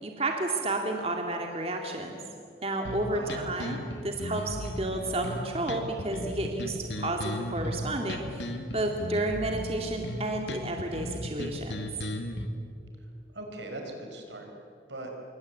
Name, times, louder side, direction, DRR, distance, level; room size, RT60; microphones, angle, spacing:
voice 1, 0.0-2.2 2.6-3.8 4.0-11.9, right 2 dB, 35° right, 2 dB, 2.2 m, -31 dB
sound 1, 2.8-12.4, left 1 dB, 80° left, 2.3 m, -36 dB
voice 2, 3.1-3.5 13.0-14.5 14.9-15.1, right 2 dB, 80° right, 2 dB, 5.6 m, -40 dB
26.5 x 24.0 x 8.4 m, 2.6 s
head